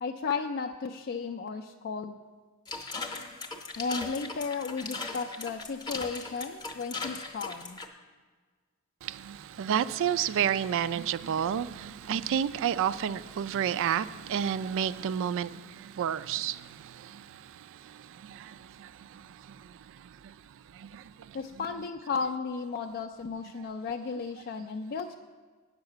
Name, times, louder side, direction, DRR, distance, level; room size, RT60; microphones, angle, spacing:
voice 1, 0.0-2.2 3.8-7.8 10.1-10.2 21.3-25.1, left 5 dB, 45° left, 0.4 m, -34 dB
sound 1, 2.7-7.9, left 3 dB, 20° left, 0.7 m, -38 dB
voice 2, 9.0-15.5 16.0-16.6, right 9 dB, 60° right, 0.3 m, -29 dB
8.2 x 5.6 x 7.8 m
head